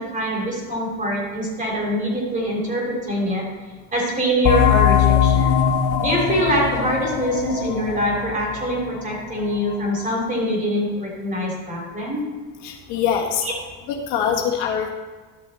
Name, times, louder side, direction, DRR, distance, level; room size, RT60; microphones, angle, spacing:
voice 1, 0.0-3.5 3.9-5.6 6.0-12.3 13.4-13.5, equal, 25° right, -2 dB, 3.3 m, -24 dB
sound 1, 4.4-9.7, left 9 dB, 65° left, 0.8 m, -20 dB
voice 2, 12.6-13.4 14.1-14.9, left 8 dB, 85° left, 0 dB, 1.8 m, -23 dB
12.0 x 6.2 x 4.2 m, 1.4 s
cardioid pair, 120°, 33 cm